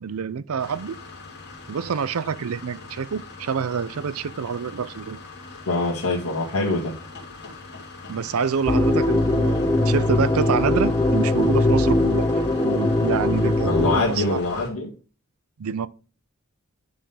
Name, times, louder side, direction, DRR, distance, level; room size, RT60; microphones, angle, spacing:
voice 1, 0.0-1.0 1.7-5.2 8.1-14.4 15.6-15.9, right 6 dB, 75° right, 0.5 m, -27 dB
sound 1, 0.6-14.7, left 3 dB, 50° left, 2.2 m, -42 dB
voice 2, 5.7-6.9 13.6-14.9, left 2 dB, 70° left, 2.0 m, -24 dB
sound 2, 8.7-14.0, left 2 dB, 15° left, 0.7 m, -20 dB
10.0 x 3.7 x 5.5 m
head